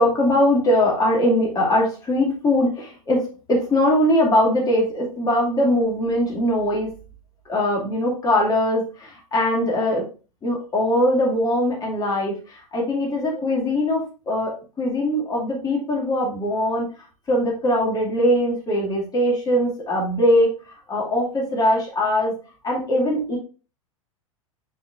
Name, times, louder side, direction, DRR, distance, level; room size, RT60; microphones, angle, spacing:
voice 1, 0.0-3.2 3.5-6.9 7.5-10.1 10.4-16.9 17.3-20.5 20.9-22.3 22.6-23.4, left 1 dB, 20° left, -2 dB, 2.2 m, -21 dB
6.8 x 5.6 x 2.4 m, 0.36 s
figure-of-eight pair, 90°, 18 cm